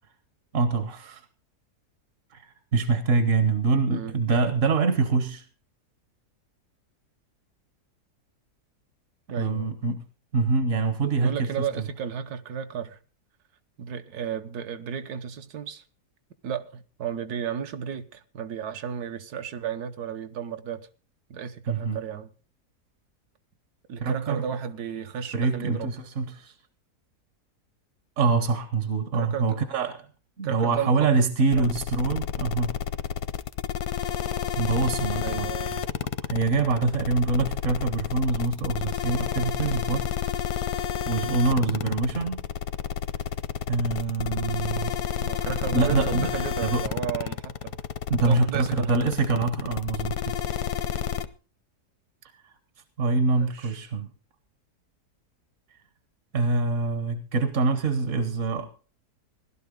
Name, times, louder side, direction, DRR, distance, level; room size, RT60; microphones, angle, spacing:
voice 1, 0.5-1.2 2.3-5.4 9.4-10.0 10.3-11.7 21.7-22.0 24.0-24.5 25.3-26.5 28.2-30.0 30.4-32.7 34.6-35.8 36.3-40.1 41.0-42.4 43.7-45.0 45.7-46.3 46.6-46.8 48.1-50.3 52.4-52.5 53.0-54.1 56.3-58.7, right 3 dB, 55° right, 1.4 m, -25 dB
voice 2, 9.3-9.8 11.2-13.0 13.8-15.8 16.4-20.9 21.3-22.3 23.9-25.9 29.2-29.6 30.4-31.3 31.6-31.7 35.2-35.9 45.1-47.8 48.2-49.0 53.3-53.8 58.1-58.2, right 7 dB, 75° right, 1.5 m, -33 dB
sound 1, 31.5-51.3, left 9 dB, 85° left, 1.4 m, -30 dB
16.5 x 12.0 x 3.7 m
omnidirectional pair, 1.7 m